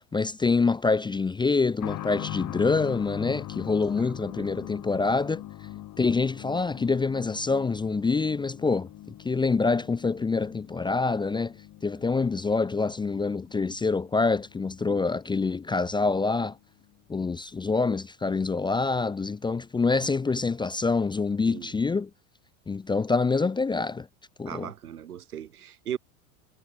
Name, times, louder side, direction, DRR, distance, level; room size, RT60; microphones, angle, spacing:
voice 1, 0.1-5.4 6.0-8.9 9.2-11.5 11.8-16.6 17.1-22.1 22.7-24.1 24.4-24.7, left 4 dB, 10° left, 0.6 m, -26 dB
sound 1, 1.8-16.2 16.5-16.6 17.6-17.7, left 14 dB, 45° left, 7.8 m, -41 dB
voice 2, 4.1-4.6 21.5-21.7 24.5-26.0, right 10 dB, 90° right, 4.3 m, -38 dB
hypercardioid pair, 100°, 44 cm